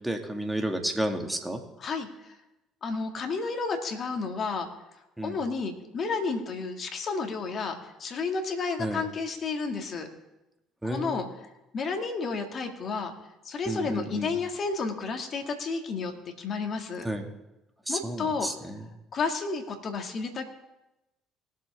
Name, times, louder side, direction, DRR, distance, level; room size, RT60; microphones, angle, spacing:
voice 1, 0.0-1.6 5.2-5.4 8.8-9.0 10.8-11.2 13.7-14.3 17.0-17.2 17.9-18.9, right 1 dB, 10° right, 4 dB, 2.2 m, -31 dB
voice 2, 2.8-4.7 5.2-10.1 10.8-11.3 11.7-13.1 13.5-16.1 16.4-17.1 17.9-18.5 19.1-20.5, left 4 dB, 50° left, 4 dB, 2.1 m, -31 dB
20.0 x 7.5 x 3.6 m, 0.95 s
hypercardioid pair, 60°, 0 cm